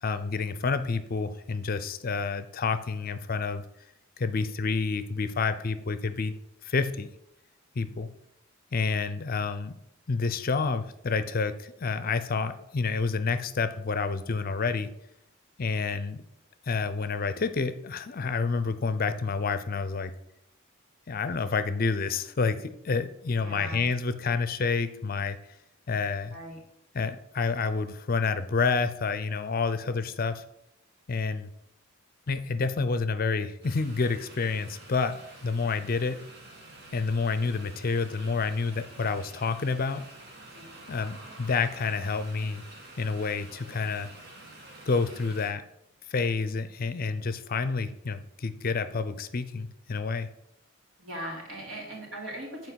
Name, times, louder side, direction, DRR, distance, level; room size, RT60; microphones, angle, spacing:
voice 1, 0.0-3.6 4.2-6.3 6.6-7.1 7.8-8.1 8.7-9.7 10.1-14.9 15.6-16.2 16.7-20.1 21.1-25.4 25.9-26.3 26.9-30.4 31.1-31.5 32.3-36.2 36.9-40.0 40.9-42.6 43.0-44.1 44.9-45.6 46.1-50.3, left 4 dB, 45° left, 12 dB, 0.5 m, -29 dB
voice 2, 23.3-23.9 26.3-26.6 40.4-40.7 51.0-52.7, right 1 dB, 70° right, -2 dB, 3.1 m, -39 dB
sound 1, 33.6-45.5, right 2 dB, 50° right, 2.0 m, -48 dB
8.1 x 4.5 x 6.2 m, 0.78 s
head